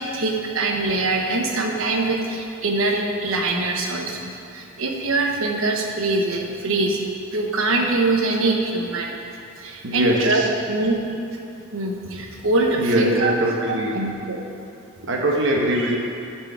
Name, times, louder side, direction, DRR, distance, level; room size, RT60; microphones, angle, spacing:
voice 1, 0.0-7.0 7.3-9.1 9.6-10.4 10.7-11.0 11.7-13.3 13.7-14.5, right 2 dB, 80° right, 1 dB, 1.0 m, -23 dB
voice 2, 9.8-10.5 12.8-14.0 15.0-16.0, right 1 dB, 65° right, 0 dB, 1.0 m, -22 dB
10.5 x 4.5 x 4.6 m, 2.7 s
head